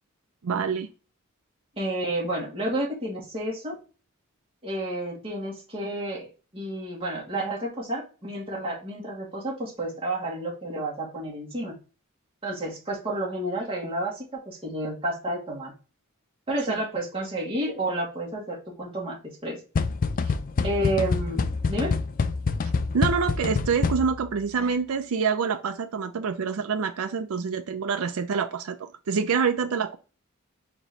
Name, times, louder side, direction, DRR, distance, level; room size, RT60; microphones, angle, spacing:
voice 1, 0.4-0.9 20.3-20.4 22.9-30.0, right 6 dB, 85° right, 0.5 m, -26 dB
voice 2, 1.8-3.8 4.6-6.3 6.5-11.7 12.4-15.7 16.5-19.6 20.6-22.0 24.6-24.7, right 1 dB, 25° right, 2.1 m, -30 dB
sound 1, 19.8-24.4, left 4 dB, 40° left, 0.4 m, -26 dB
4.5 x 3.0 x 3.8 m
head